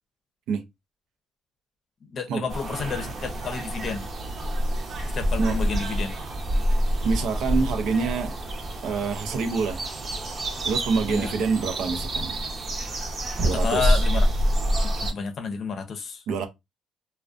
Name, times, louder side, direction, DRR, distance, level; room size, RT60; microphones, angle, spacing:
voice 1, 2.0-4.0 5.1-6.1 11.1-11.3 13.4-14.3 14.8-16.2, left 5 dB, 55° left, 0.5 m, -31 dB
sound 1, 2.5-15.1, equal, 50° right, 0.7 m, -27 dB
voice 2, 7.0-8.3 8.8-9.8 10.6-12.4 13.4-14.0 16.3-16.5, right 5 dB, 85° right, 0.5 m, -26 dB
2.4 x 2.1 x 2.4 m
cardioid pair, 90°, 0 cm